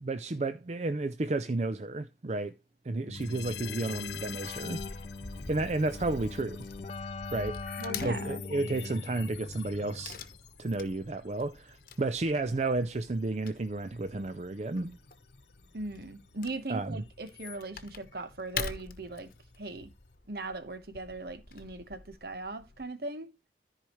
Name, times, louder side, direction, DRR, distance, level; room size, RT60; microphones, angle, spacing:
voice 1, 0.0-2.5 2.8-4.8 5.5-6.6 7.3-7.6 8.0-10.2 10.6-15.0 16.7-17.0, right 2 dB, 35° right, 0.5 m, -32 dB
sound 1, 3.1-20.2, left 9 dB, 80° left, 1.0 m, -49 dB
Keyboard (musical), 3.1-10.3, left 3 dB, 35° left, 0.3 m, -42 dB
Wood / Tearing, 3.2-22.9, left 5 dB, 50° left, 1.1 m, -46 dB
voice 2, 7.8-8.4 15.7-19.3 19.6-19.9 20.3-23.3, right 2 dB, 55° right, 1.1 m, -39 dB
14.0 x 4.9 x 3.1 m
head